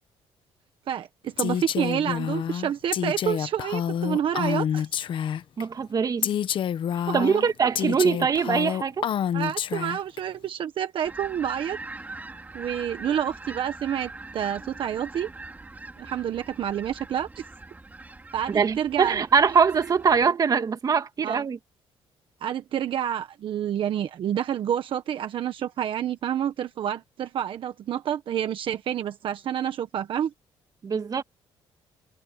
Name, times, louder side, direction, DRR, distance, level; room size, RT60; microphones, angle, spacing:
voice 1, 0.9-4.9 7.1-7.4 9.3-11.8 12.5-15.3 16.0-17.4 18.3-19.1 21.2-21.5 22.4-30.3, right 9 dB, 60° right, 1.3 m, -28 dB
Female speech woman speaking, 1.4-5.6 6.2-10.2, left 9 dB, 55° left, 1.1 m, -28 dB
voice 2, 5.6-6.3 7.1-9.1 18.5-21.6 30.8-31.2, right 6 dB, 35° right, 2.2 m, -23 dB
sound 1, 11.0-20.3, right 2 dB, 15° right, 3.8 m, -42 dB
cardioid pair, 115°, 10 cm